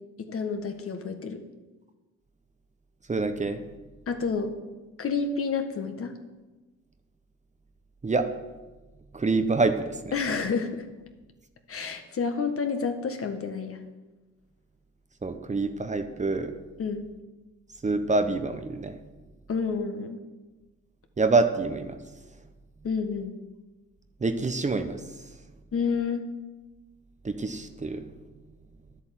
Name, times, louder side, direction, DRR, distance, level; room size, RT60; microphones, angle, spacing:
voice 1, 0.2-1.4 4.1-4.5 5.0-6.2 10.1-10.9 11.7-13.8 16.8-17.0 19.5-20.2 22.8-23.3 25.7-26.3, left 5 dB, 45° left, 6 dB, 1.6 m, -29 dB
voice 2, 3.1-3.6 8.0-8.3 9.1-10.1 15.2-16.5 17.8-19.0 21.2-22.0 24.2-25.2 27.2-28.1, right 3 dB, 25° right, 8 dB, 1.0 m, -26 dB
10.5 x 8.2 x 7.7 m, 1.2 s
cardioid pair, 90°, 30 cm